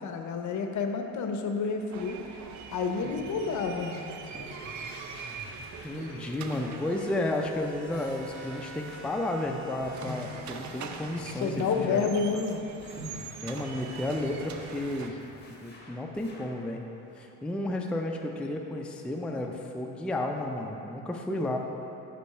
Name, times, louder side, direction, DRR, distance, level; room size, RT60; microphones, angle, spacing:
voice 1, 0.0-2.2 2.7-4.0 11.4-12.6, left 5 dB, 55° left, 4 dB, 0.7 m, -29 dB
sound 1, 1.9-15.1, right 5 dB, 50° right, 0.6 m, -43 dB
sound 2, 3.0-3.4 4.1-4.7 5.9-6.3 7.0-9.4 10.0-10.4 11.5-11.9 12.7-12.8 13.0-13.3 14.4-15.0 15.3-15.4 15.6-15.7 16.1-16.5 16.8-17.9 18.3-18.7 19.1-20.2 20.5-20.6, left 1 dB, 30° right, 1.6 m, -45 dB
sound 3, 3.2-6.9 7.9-9.3 9.8-12.1 12.8-16.7, left 2 dB, 30° left, 1.5 m, -50 dB
voice 2, 5.8-12.1 13.4-15.2 15.6-16.8 17.2-21.6, left 1 dB, 5° left, 2 dB, 0.4 m, -32 dB
5.3 x 5.1 x 5.7 m, 2.9 s
cardioid pair, 90°, 36 cm